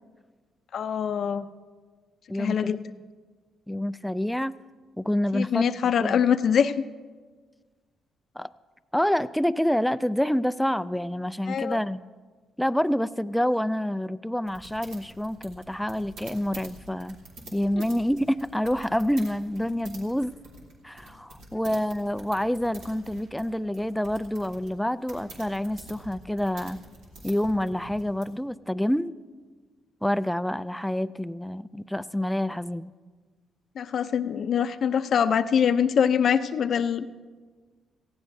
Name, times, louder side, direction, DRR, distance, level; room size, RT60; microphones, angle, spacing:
voice 1, 0.7-1.5 2.4-2.8 5.3-6.7 11.5-11.8 33.8-37.2, left 7 dB, 60° left, 11 dB, 0.6 m, -24 dB
voice 2, 2.3-2.8 3.7-4.5 5.0-5.7 6.0-6.2 8.4-8.5 8.9-12.0 12.6-17.2 17.5-20.4 20.8-26.8 27.2-29.1 30.0-32.9, equal, 5° left, 15 dB, 0.4 m, -27 dB
sound 1, 14.5-28.3, right 1 dB, 85° right, 3.2 m, -47 dB
18.5 x 15.5 x 2.7 m, 1.5 s
cardioid pair, 90°, 0 cm